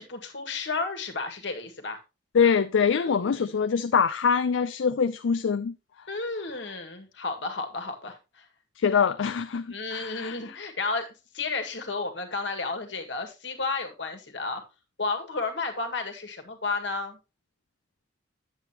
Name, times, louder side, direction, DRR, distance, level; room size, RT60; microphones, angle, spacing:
voice 1, 0.0-2.0 2.4-2.5 2.9-3.6 6.1-8.5 9.7-14.6 15.0-17.2, left 3 dB, 75° left, 1.8 m, -32 dB
voice 2, 2.3-5.7 8.8-10.4, left 6 dB, 90° left, 0.4 m, -24 dB
9.8 x 7.9 x 2.9 m
head